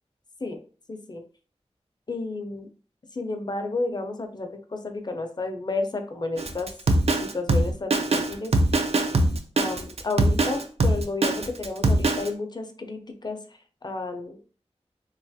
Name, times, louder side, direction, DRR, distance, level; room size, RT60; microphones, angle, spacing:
voice 1, 0.9-1.2 2.1-2.7 3.1-6.7 7.2-8.5 9.6-13.4 13.8-14.4, left 3 dB, 35° left, 5 dB, 0.5 m, -31 dB
Drum kit, 6.4-12.3, right 2 dB, 60° right, 0.4 m, -22 dB
2.8 x 2.3 x 2.6 m, 0.41 s
wide cardioid pair, 70°, 12 cm